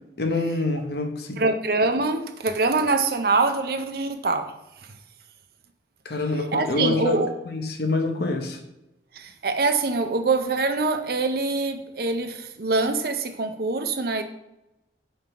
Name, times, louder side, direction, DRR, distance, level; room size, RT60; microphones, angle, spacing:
voice 1, 0.2-1.4 6.0-7.2 7.4-8.6, left 3 dB, 60° left, 4 dB, 0.8 m, -26 dB
voice 2, 1.4-4.5 6.5-7.3 9.1-14.2, right 3 dB, 55° right, 7 dB, 0.6 m, -24 dB
5.6 x 3.7 x 4.5 m, 0.90 s
head